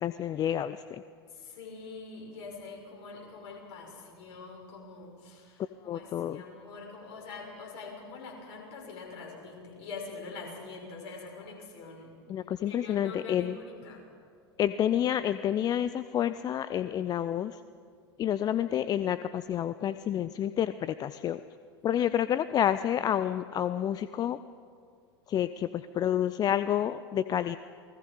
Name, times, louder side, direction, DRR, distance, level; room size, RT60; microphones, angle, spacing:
voice 1, 0.0-1.0 5.9-6.4 12.3-13.6 14.6-17.5 18.2-21.4 21.8-24.4 25.3-27.6, left 10 dB, 30° left, 14 dB, 0.5 m, -29 dB
voice 2, 1.3-12.2 12.6-14.0, left 4 dB, 50° left, 0 dB, 6.5 m, -44 dB
28.5 x 20.0 x 5.4 m, 2.2 s
figure-of-eight pair, 85°, 14 cm